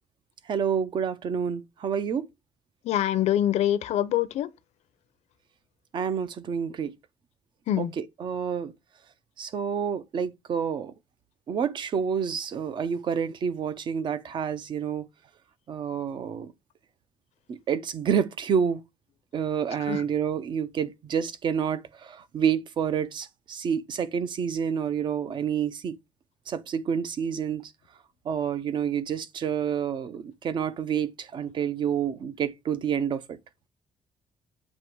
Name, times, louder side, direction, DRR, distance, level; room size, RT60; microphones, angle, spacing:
voice 1, 0.5-2.3 5.9-6.9 7.8-8.7 9.4-10.9 11.5-15.1 15.7-16.5 17.5-18.8 19.3-26.0 26.5-27.7 28.3-33.4, right 7 dB, 40° right, 0.6 m, -28 dB
voice 2, 2.8-4.5 7.7-7.9 19.8-20.0, left 11 dB, 70° left, 0.6 m, -25 dB
7.5 x 3.0 x 4.6 m
cardioid pair, 175°, 12 cm